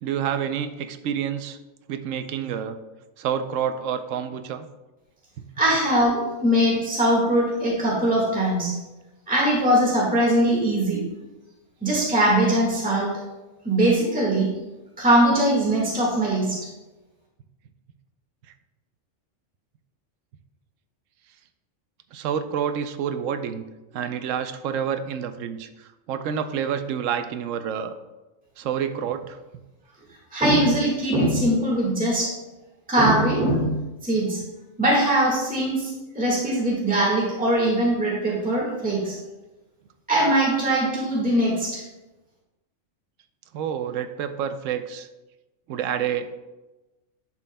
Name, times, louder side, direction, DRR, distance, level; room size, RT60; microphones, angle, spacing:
voice 1, 0.0-1.6 1.9-2.8 3.2-4.7 22.1-23.6 23.9-27.9 28.6-29.4 43.5-45.1 45.7-46.3, right 8 dB, 80° right, 9 dB, 0.9 m, -28 dB
voice 2, 5.6-8.7 9.3-11.0 11.8-13.2 13.6-14.5 15.0-16.6 30.3-32.3 32.9-33.7 34.0-34.4 34.8-39.2 40.1-41.8, right 1 dB, 5° right, -4 dB, 1.6 m, -21 dB
11.0 x 6.1 x 2.2 m, 1.1 s
omnidirectional pair, 1.3 m